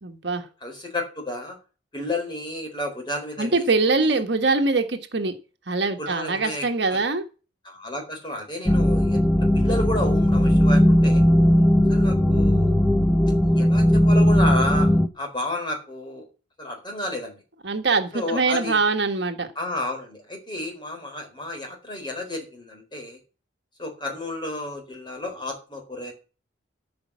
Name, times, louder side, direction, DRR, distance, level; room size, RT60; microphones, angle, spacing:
voice 1, 0.0-0.4 3.4-5.3 5.7-7.2 17.6-19.5, right 3 dB, 60° right, 5 dB, 1.5 m, -23 dB
voice 2, 0.6-1.6 1.9-4.2 6.0-7.0 7.6-9.2 9.5-11.2 11.9-12.8 13.6-16.3 16.6-17.4 18.1-18.8 19.6-23.2 23.8-26.1, left 1 dB, 25° left, 3 dB, 4.2 m, -31 dB
sound 1, 8.6-15.1, equal, 5° left, 0.7 m, -18 dB
13.5 x 5.4 x 7.4 m, 0.34 s
head